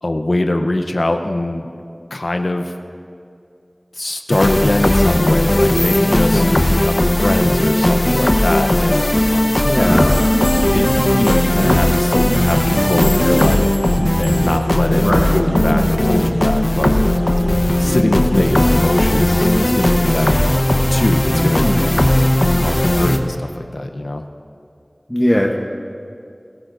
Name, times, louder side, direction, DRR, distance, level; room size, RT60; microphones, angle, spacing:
voice 1, 0.0-1.7 2.1-2.7 4.0-6.4 6.7-9.0 9.8-10.2 10.7-13.7 14.2-17.0 17.8-20.3 20.9-21.7 22.6-24.2, left 1 dB, 80° left, 5 dB, 0.8 m, -21 dB
sound 1, 4.3-23.2, left 1 dB, 45° left, 1.0 m, -16 dB
voice 2, 9.6-10.1 15.0-15.4 21.4-21.8 25.1-25.6, equal, 10° left, 0 dB, 1.0 m, -19 dB
sound 2, 9.9-23.2, right 1 dB, 55° right, 0.9 m, -26 dB
sound 3, 10.1-14.7, right 1 dB, 90° right, 2.3 m, -38 dB
21.5 x 18.5 x 2.6 m, 2.4 s
wide cardioid pair, 45°, 0 cm